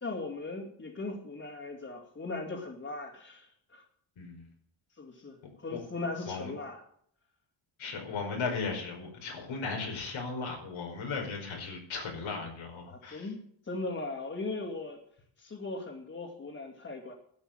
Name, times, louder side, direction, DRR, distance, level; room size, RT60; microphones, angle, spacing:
voice 1, 0.0-3.8 4.9-6.8 12.9-15.0 15.4-17.1, left 3 dB, 30° left, -3 dB, 2.7 m, -39 dB
voice 2, 7.8-13.3, left 4 dB, 90° left, 1 dB, 5.1 m, -36 dB
12.5 x 7.9 x 9.1 m, 0.65 s
wide cardioid pair, 130°, 46 cm